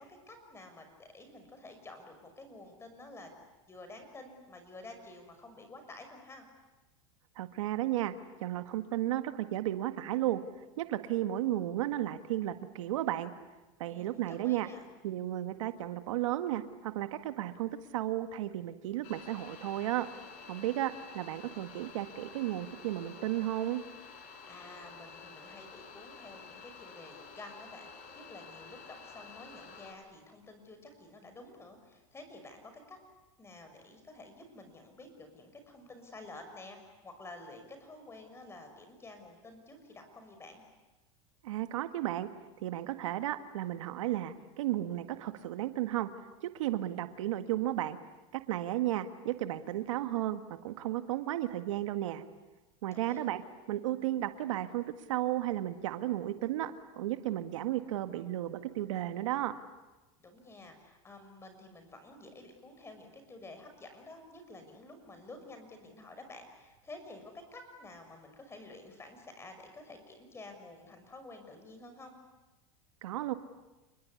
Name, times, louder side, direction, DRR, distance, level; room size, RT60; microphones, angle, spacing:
voice 1, 0.0-3.3 3.7-6.5 13.9-14.8 24.2-33.0 33.4-40.6 52.9-53.3 60.2-72.2, left 2 dB, 15° left, 6 dB, 6.0 m, -50 dB
voice 2, 7.4-8.1 8.4-10.4 10.8-13.3 13.8-14.7 15.0-20.1 20.5-23.8 41.4-42.3 42.6-46.1 46.4-48.0 48.3-52.2 52.8-53.4 53.7-59.5 73.0-73.3, right 13 dB, 85° right, 9 dB, 1.8 m, -34 dB
sound 1, 19.0-29.9, left 5 dB, 55° left, 6.0 m, -50 dB
28.5 x 21.0 x 9.8 m, 1.1 s
supercardioid pair, 130°, 16 cm